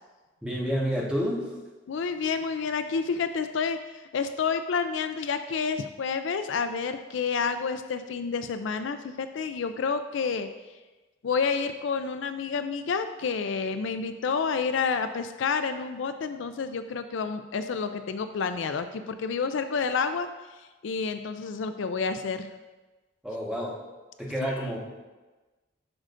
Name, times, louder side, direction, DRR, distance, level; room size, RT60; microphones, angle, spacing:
voice 1, 0.4-1.6 23.2-23.8 24.2-24.8, equal, 5° right, -5 dB, 1.3 m, -29 dB
voice 2, 1.9-10.5 11.2-20.3 20.8-22.5, left 5 dB, 65° left, 9 dB, 0.4 m, -29 dB
10.5 x 6.2 x 2.6 m, 1.2 s
head